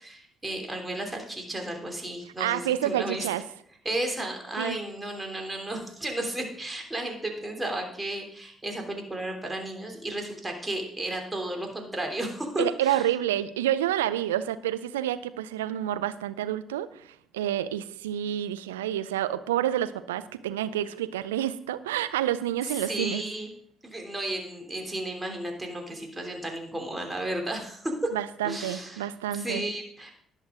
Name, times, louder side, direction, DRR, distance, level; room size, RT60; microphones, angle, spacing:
voice 1, 0.0-3.3 3.8-13.1 22.6-23.5 23.8-28.1 28.4-29.1 29.3-30.2, right 1 dB, 15° right, 2 dB, 3.2 m, -33 dB
voice 2, 2.4-3.4 4.6-4.8 12.6-17.0 17.3-23.2 28.1-29.7, right 12 dB, 80° right, 12 dB, 0.5 m, -28 dB
18.0 x 6.3 x 3.8 m, 0.67 s
figure-of-eight pair, 45°, 0 cm